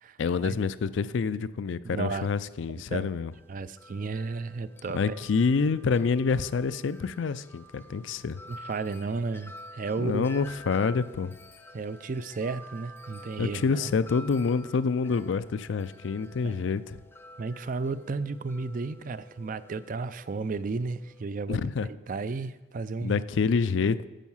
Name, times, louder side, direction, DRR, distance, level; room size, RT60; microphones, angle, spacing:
voice 1, 0.2-3.3 4.9-8.4 10.0-11.3 13.4-17.0 21.5-21.9 23.0-24.1, left 5 dB, 70° left, 14 dB, 0.4 m, -27 dB
voice 2, 1.8-2.3 2.7-3.1 3.5-5.2 8.5-10.2 11.7-13.9 16.4-16.6 17.4-23.2, right 4 dB, 45° right, 14 dB, 0.4 m, -33 dB
Wind chime, 3.3-21.2, equal, 10° left, 0.6 m, -50 dB
9.1 x 7.3 x 5.6 m, 1.1 s
head